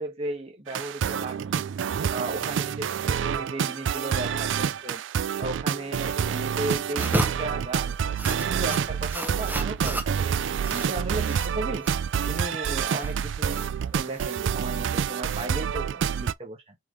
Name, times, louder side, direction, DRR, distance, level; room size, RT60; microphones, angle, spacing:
voice 1, 0.0-1.7 2.1-5.0 5.4-7.9 8.2-11.9 12.3-16.8, right 2 dB, 35° right, 1.3 m, -35 dB
sound 1, 0.7-16.3, right 7 dB, 85° right, 0.4 m, -28 dB
sound 2, 6.9-14.8, right 1 dB, 10° right, 0.8 m, -34 dB
4.5 x 3.7 x 3.2 m
head